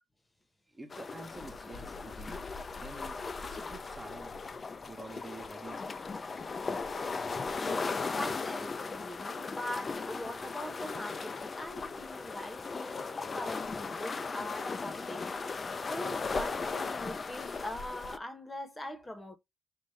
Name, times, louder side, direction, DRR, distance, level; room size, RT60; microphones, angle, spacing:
voice 1, 0.7-2.4 2.8-4.4 4.9-5.8 6.7-6.9, right 3 dB, 20° right, 0.9 m, -48 dB
sound 1, 0.9-18.2, left 4 dB, 35° left, 0.5 m, -37 dB
voice 2, 7.5-19.4, left 1 dB, 15° left, 1.1 m, -42 dB
5.6 x 2.5 x 3.1 m
cardioid pair, 90°, 0 cm